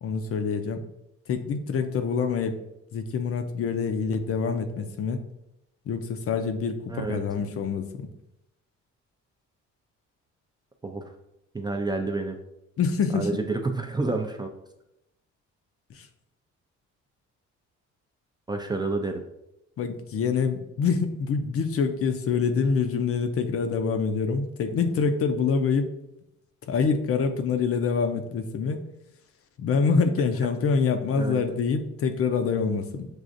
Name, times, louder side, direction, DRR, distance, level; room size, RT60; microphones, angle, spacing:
voice 1, 0.0-0.8 1.3-2.6 2.9-5.3 5.9-8.1 12.8-13.3 15.9-16.1 19.8-25.9 26.7-28.8 29.6-33.1, left 5 dB, 50° left, 7 dB, 0.5 m, -26 dB
voice 2, 6.9-7.2 10.8-11.0 11.5-12.4 13.1-14.5 18.5-19.2 31.2-31.4, right 3 dB, 15° right, 3 dB, 0.3 m, -29 dB
6.2 x 2.4 x 2.5 m, 0.85 s
cardioid pair, 90°, 30 cm